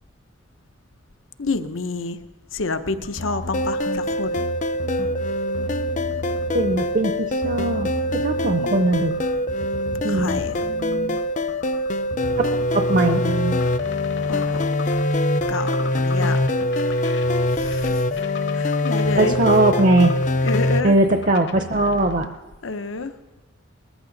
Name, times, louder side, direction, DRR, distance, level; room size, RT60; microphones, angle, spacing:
voice 1, 1.4-2.2 2.5-4.4 8.4-8.8 10.1-10.6 14.2-14.7 15.5-16.4 17.6-18.0 18.5-19.3 20.4-20.9 22.6-23.1, left 3 dB, 90° left, 10 dB, 0.8 m, -28 dB
sound 1, 2.9-22.3, left 1 dB, 60° left, 1.0 m, -36 dB
sound 2, 3.5-20.8, left 1 dB, 40° left, 0.4 m, -23 dB
voice 2, 6.5-9.1 10.0-11.2 12.4-13.6 19.2-20.1 20.8-22.3, right 2 dB, 40° right, 7 dB, 0.6 m, -20 dB
20.5 x 14.0 x 3.9 m, 1.2 s
head